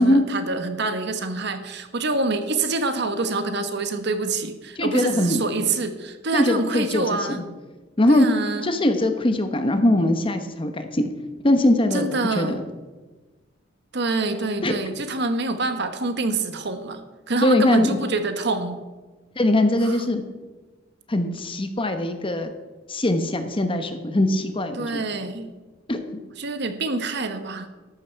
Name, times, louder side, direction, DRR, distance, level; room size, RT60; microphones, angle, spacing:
voice 1, 0.0-7.4 8.1-8.7 11.9-12.6 13.9-17.0 17.3-18.8 19.8-20.0 24.8-25.5 26.4-27.7, right 3 dB, 60° right, 9 dB, 1.3 m, -26 dB
voice 2, 4.7-5.4 6.3-7.4 8.0-8.3 8.6-11.0 11.4-12.6 14.6-14.8 17.4-18.0 19.4-20.2 21.1-22.5 22.9-25.0 25.9-26.2, left 1 dB, 25° left, 7 dB, 1.0 m, -21 dB
14.0 x 12.0 x 4.6 m, 1.3 s
head